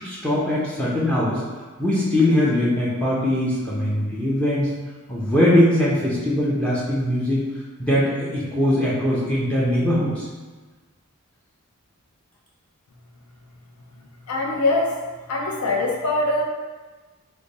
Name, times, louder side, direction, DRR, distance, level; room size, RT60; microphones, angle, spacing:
voice 1, 0.0-1.4 1.8-4.7 5.1-7.4 7.8-10.3, left 1 dB, 5° left, -7 dB, 0.6 m, -21 dB
voice 2, 14.2-15.0 15.3-16.4, left 2 dB, 85° left, -1 dB, 0.6 m, -22 dB
3.3 x 2.2 x 3.9 m, 1.3 s
head